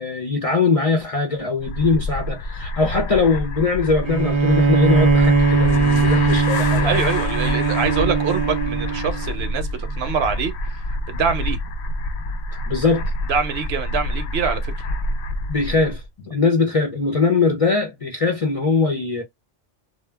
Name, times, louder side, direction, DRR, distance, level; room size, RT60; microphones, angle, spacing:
voice 1, 0.0-6.9 12.5-13.1 15.5-19.2, left 4 dB, 40° left, 0.5 m, -21 dB
sound 1, 1.6-16.1, left 2 dB, 70° left, 0.8 m, -27 dB
Bowed string instrument, 4.0-9.5, right 4 dB, 40° right, 0.4 m, -19 dB
voice 2, 6.8-11.6 13.3-14.9, right 6 dB, 65° right, 0.8 m, -25 dB
2.3 x 2.1 x 3.3 m
omnidirectional pair, 1.2 m